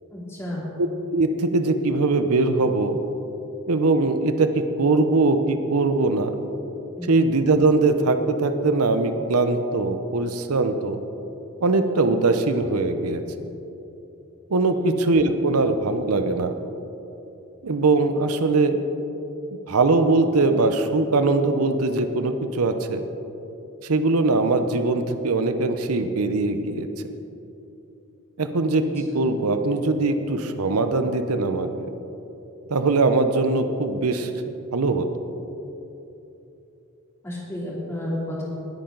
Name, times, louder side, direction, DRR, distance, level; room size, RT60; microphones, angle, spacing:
voice 1, 0.1-0.6 7.0-7.2 14.8-15.1 29.1-29.2 37.2-38.4, left 1 dB, 10° left, -6 dB, 3.1 m, -32 dB
voice 2, 0.8-3.0 3.7-6.4 7.1-11.0 11.6-13.2 14.5-16.5 17.6-18.8 19.7-23.0 23.8-26.9 28.4-31.9 32.7-34.3 34.7-35.1, right 3 dB, 90° right, 8 dB, 0.8 m, -21 dB
20.0 x 8.8 x 3.9 m, 3.0 s
head